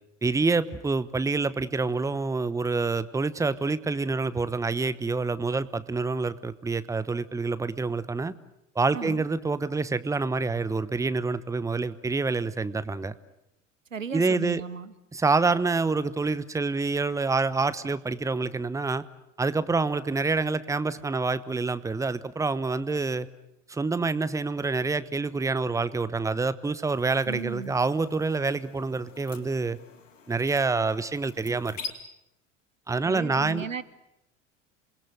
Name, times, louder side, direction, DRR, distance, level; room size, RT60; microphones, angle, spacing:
voice 1, 0.2-8.3 8.7-13.1 14.1-14.6 15.1-19.0 19.4-23.3 23.7-29.8 30.3-31.8 32.9-33.6, right 3 dB, 10° right, 16 dB, 0.9 m, -27 dB
voice 2, 8.9-9.2 13.9-14.9 27.3-27.8 33.0-33.8, right 6 dB, 85° right, 16 dB, 1.0 m, -36 dB
sound 1, 26.8-31.9, left 6 dB, 75° left, 2.3 m, -45 dB
28.0 x 21.0 x 8.0 m, 0.86 s
figure-of-eight pair, 70°, 38 cm